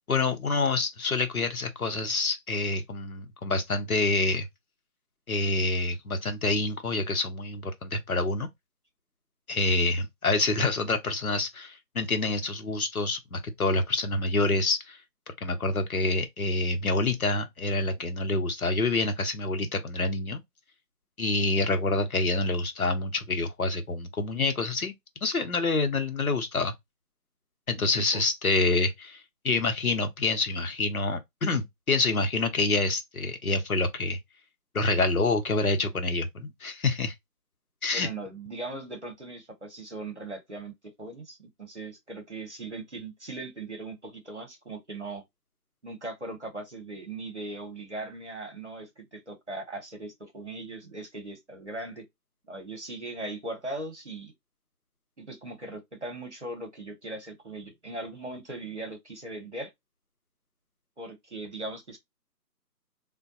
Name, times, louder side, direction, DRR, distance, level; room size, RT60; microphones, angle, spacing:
voice 1, 0.1-4.5 5.3-8.5 9.5-15.0 15.4-20.4 21.2-24.9 25.2-26.7 27.7-34.2 34.7-37.1 37.8-38.1, left 3 dB, 60° left, 0.8 m, -27 dB
voice 2, 37.9-45.2 45.8-52.0 52.5-54.3 55.2-59.7 61.0-62.0, right 2 dB, 45° right, 0.9 m, -39 dB
3.4 x 2.2 x 2.6 m
figure-of-eight pair, 170°, 49 cm